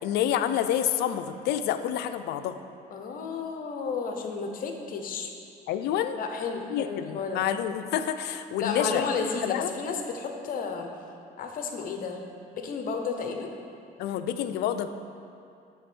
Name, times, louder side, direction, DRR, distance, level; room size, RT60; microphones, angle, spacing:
voice 1, 0.0-2.6 5.7-6.2 6.7-9.0 9.4-9.7 14.0-14.9, left 10 dB, 75° left, 10 dB, 0.4 m, -28 dB
voice 2, 2.9-5.3 6.1-7.4 8.6-10.9 11.4-12.2 12.5-13.5, left 5 dB, 55° left, 3 dB, 0.9 m, -32 dB
9.3 x 3.5 x 6.0 m, 2.5 s
cardioid pair, 110°, 17 cm